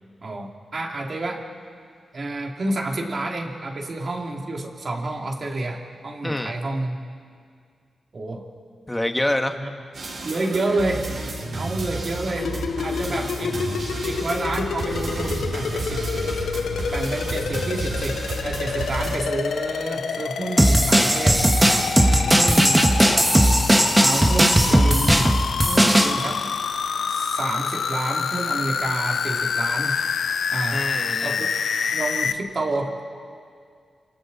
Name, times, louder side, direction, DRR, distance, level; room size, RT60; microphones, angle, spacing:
voice 1, 0.2-1.4 2.1-7.0 8.1-8.4 9.6-9.7 10.2-11.1 11.5-13.6 14.0-16.0 16.9-18.2 18.4-21.9 22.4-23.3 24.0-25.3 25.6-26.4 27.1-30.0 30.5-30.8 31.2-31.5 31.9-32.9, right 2 dB, 50° right, 0 dB, 3.1 m, -29 dB
voice 2, 8.9-9.6 22.1-22.5 30.7-31.5, left 1 dB, 10° left, 6 dB, 1.6 m, -27 dB
sound 1, 9.9-19.2, right 2 dB, 70° right, 6.3 m, -31 dB
sound 2, 12.4-32.3, left 6 dB, 80° left, 0.7 m, -28 dB
sound 3, 20.6-26.1, right 1 dB, 10° right, 1.8 m, -17 dB
29.5 x 27.0 x 4.3 m, 2.2 s
cardioid pair, 75°, 0 cm